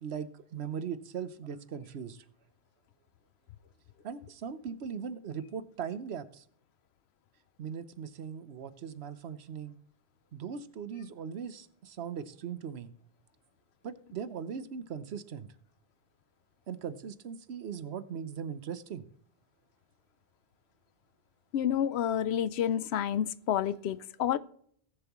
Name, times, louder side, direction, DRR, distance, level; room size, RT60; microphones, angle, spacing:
voice 1, 0.0-2.2 4.0-6.4 7.6-9.7 10.3-12.9 13.8-15.5 16.7-19.0, right 7 dB, 85° right, 1.1 m, -39 dB
voice 2, 21.5-24.4, left 10 dB, 85° left, 0.9 m, -29 dB
18.5 x 7.0 x 3.0 m
omnidirectional pair, 1.1 m